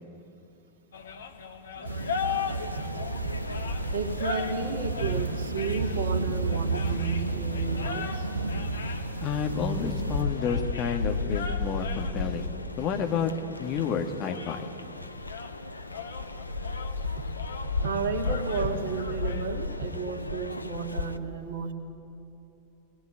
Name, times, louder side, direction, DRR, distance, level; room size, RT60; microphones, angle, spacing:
sound 1, 0.9-19.5, left 6 dB, 65° left, 1.7 m, -40 dB
sound 2, 1.8-10.2, right 3 dB, 80° right, 1.3 m, -32 dB
sound 3, 2.5-21.2, left 3 dB, 85° left, 0.9 m, -35 dB
voice 1, 3.8-8.3 17.2-17.3 17.8-21.7, right 4 dB, 55° right, 4 dB, 2.6 m, -32 dB
voice 2, 9.2-12.5 12.8-13.3 13.6-14.7, left 6 dB, 35° left, 5 dB, 2.0 m, -30 dB
22.5 x 20.0 x 9.6 m, 2.8 s
figure-of-eight pair, 90°, 0 cm